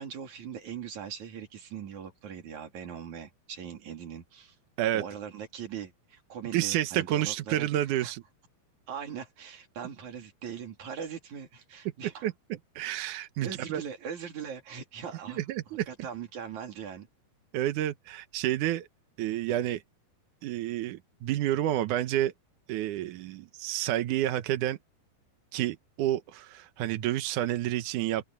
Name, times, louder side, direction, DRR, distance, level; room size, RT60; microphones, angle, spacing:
voice 1, 0.0-4.6 4.9-7.7 8.0-8.1 8.9-12.3 13.4-15.4 15.9-17.1, right 7 dB, 50° right, 3.8 m, -40 dB
voice 2, 6.5-8.2 12.2-13.8 15.3-15.9 17.5-18.9 19.2-19.8 20.4-22.3 22.7-24.8 25.5-28.2, right 13 dB, 75° right, 1.9 m, -29 dB
open air
omnidirectional pair, 4.8 m